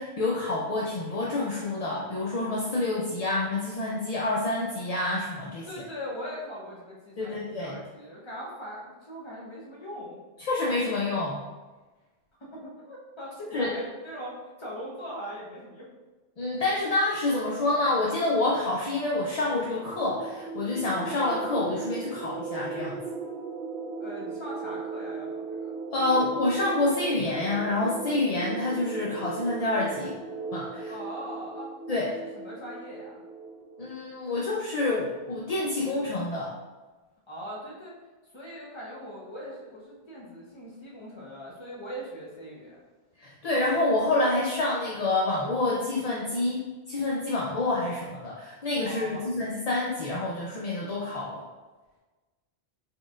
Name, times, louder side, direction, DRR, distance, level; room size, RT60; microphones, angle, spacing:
voice 1, 0.0-5.7 7.2-7.8 10.4-11.4 13.5-13.7 16.4-23.0 25.9-30.1 30.5-30.9 31.9-32.1 33.8-36.5 43.2-46.6 46.9-51.4, left 2 dB, 45° left, -5 dB, 0.5 m, -28 dB
voice 2, 5.7-10.2 12.4-15.9 24.0-25.7 30.9-33.2 37.3-37.9 38.3-42.8 48.8-49.3, equal, 25° left, -5 dB, 1.0 m, -40 dB
sound 1, 19.6-34.0, right 4 dB, 75° right, 0.8 m, -37 dB
4.0 x 3.8 x 2.5 m, 1.2 s
omnidirectional pair, 1.1 m